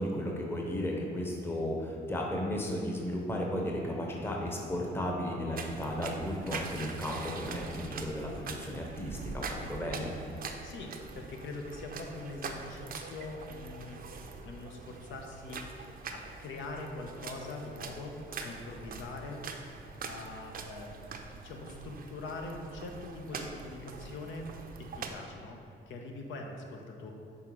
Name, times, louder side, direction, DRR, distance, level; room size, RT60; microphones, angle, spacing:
voice 1, 0.0-10.1, equal, 10° left, -1 dB, 0.8 m, -34 dB
sound 1, 5.6-25.1, right 4 dB, 45° right, 0.5 m, -43 dB
voice 2, 10.6-14.0 14.4-19.4 20.0-24.5 24.8-25.6 25.9-27.1, left 2 dB, 75° left, 2 dB, 0.8 m, -43 dB
5.7 x 3.7 x 4.5 m, 2.6 s
cardioid pair, 90°, 20 cm